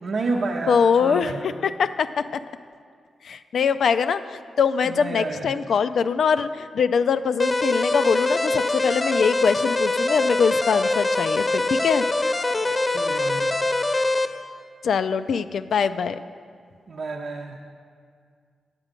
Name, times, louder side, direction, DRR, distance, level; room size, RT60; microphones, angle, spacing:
voice 1, 0.0-1.5 4.8-5.5 12.9-13.7 16.9-17.6, right 3 dB, 70° right, -1 dB, 0.7 m, -30 dB
voice 2, 0.7-2.4 3.2-12.0 14.8-16.2, left 6 dB, 70° left, 12 dB, 0.3 m, -23 dB
sound 1, 7.4-14.3, left 2 dB, 35° left, 0.7 m, -23 dB
9.6 x 7.6 x 5.1 m, 2.1 s
supercardioid pair, 50°, 0 cm